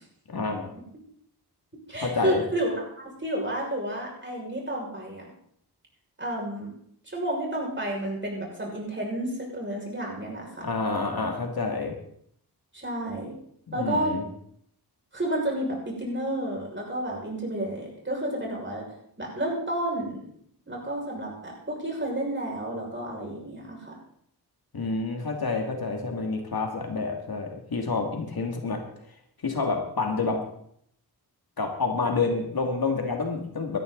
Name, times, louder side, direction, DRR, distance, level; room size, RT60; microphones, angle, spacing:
voice 1, 0.3-0.7 2.0-2.4 10.6-12.0 13.7-14.2 24.7-28.8 29.4-30.4 31.6-33.8, left 4 dB, 60° left, 2 dB, 2.6 m, -28 dB
voice 2, 1.9-5.3 6.2-6.7 7.1-10.6 12.7-13.3 13.7-14.2 15.1-18.8 19.2-20.2 20.7-24.0, right 1 dB, 30° right, -2 dB, 6.1 m, -31 dB
18.0 x 13.0 x 4.0 m, 0.68 s
wide cardioid pair, 95°, 40 cm